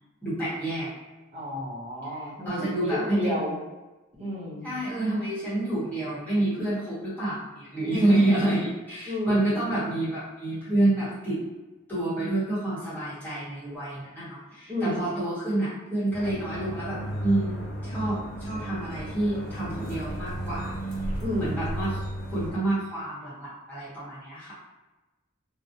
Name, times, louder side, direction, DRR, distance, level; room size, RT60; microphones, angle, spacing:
voice 1, 0.2-0.9 2.4-3.5 4.6-11.4 11.9-20.7 21.4-22.0 22.3-24.5, right 1 dB, 10° left, -11 dB, 0.9 m, -28 dB
voice 2, 1.3-3.6 4.2-4.7 7.9-8.2 9.1-9.4 14.7-15.1 21.2-21.6, left 1 dB, 30° right, -7 dB, 0.7 m, -31 dB
sound 1, 16.1-22.5, right 1 dB, 50° left, 0.7 m, -34 dB
2.4 x 2.0 x 2.7 m, 1.1 s
head